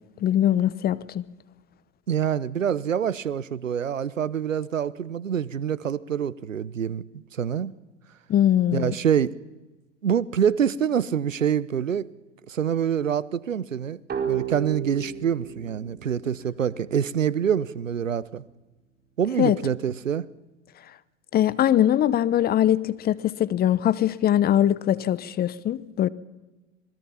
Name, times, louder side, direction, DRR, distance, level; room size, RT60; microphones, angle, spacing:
voice 1, 0.2-1.2 8.3-8.9 19.4-19.6 21.3-26.1, left 11 dB, 25° left, 0.9 m, -22 dB
voice 2, 2.1-7.7 8.7-9.3 10.0-12.1 12.5-18.4 19.2-20.3, right 8 dB, 85° right, 0.9 m, -26 dB
sound 1, 14.1-17.6, right 9 dB, 25° right, 4.5 m, -34 dB
27.0 x 20.5 x 5.8 m
figure-of-eight pair, 90°, 38 cm